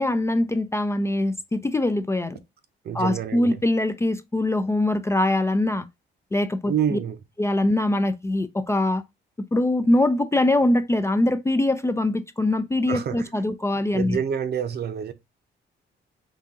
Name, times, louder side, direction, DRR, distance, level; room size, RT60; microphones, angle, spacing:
voice 1, 0.0-2.4 2.9-5.9 6.3-7.0 7.4-9.0 9.5-14.2, left 1 dB, 15° left, 0.3 m, -23 dB
voice 2, 2.8-3.6 6.7-7.2 12.9-13.3 13.9-15.1, right 8 dB, 55° right, 0.7 m, -27 dB
4.1 x 2.5 x 3.6 m
cardioid pair, 90°, 20 cm